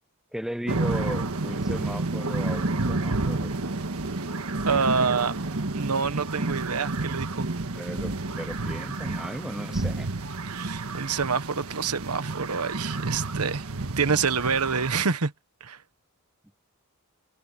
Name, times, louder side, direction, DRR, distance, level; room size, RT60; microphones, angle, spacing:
voice 1, 0.3-3.5 7.7-10.1, equal, ahead, 0.5 m, -35 dB
sound 1, 0.7-15.0, right 2 dB, 75° right, 1.6 m, -30 dB
voice 2, 4.7-5.4 5.7-7.5 10.4-13.7 14.0-15.3 15.6-15.8, right 5 dB, 90° right, 1.3 m, -27 dB
head